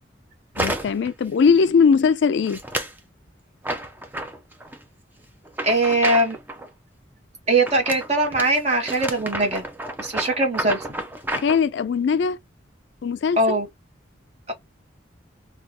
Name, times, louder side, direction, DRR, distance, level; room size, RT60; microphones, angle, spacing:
sound 1, 0.5-1.1 1.5-1.9 2.5-3.0 3.6-4.8 5.4-6.7 7.6-11.6, right 1 dB, 10° right, 0.4 m, -31 dB
voice 1, 0.6-2.6 11.3-12.4 13.0-13.6, left 5 dB, 65° left, 0.3 m, -20 dB
voice 2, 5.6-6.4 7.5-9.6 10.0-10.8 13.4-13.7, right 2 dB, 35° right, 1.1 m, -21 dB
4.4 x 2.3 x 2.7 m
head